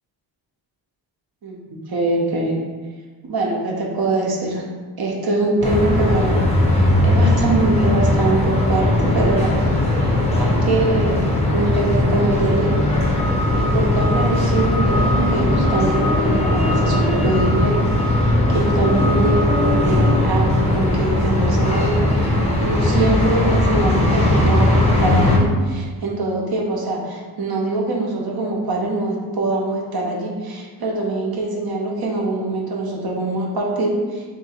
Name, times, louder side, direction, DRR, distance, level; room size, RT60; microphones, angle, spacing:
voice 1, 1.4-2.6 3.2-4.6 5.0-6.5 7.0-9.6 10.4-12.8 13.5-17.9 18.2-34.2, right 2 dB, 55° right, -2 dB, 0.9 m, -23 dB
sound 1, 5.6-25.4, left 1 dB, 15° left, 0.7 m, -18 dB
3.0 x 2.9 x 4.3 m, 1.4 s
cardioid pair, 95°, 46 cm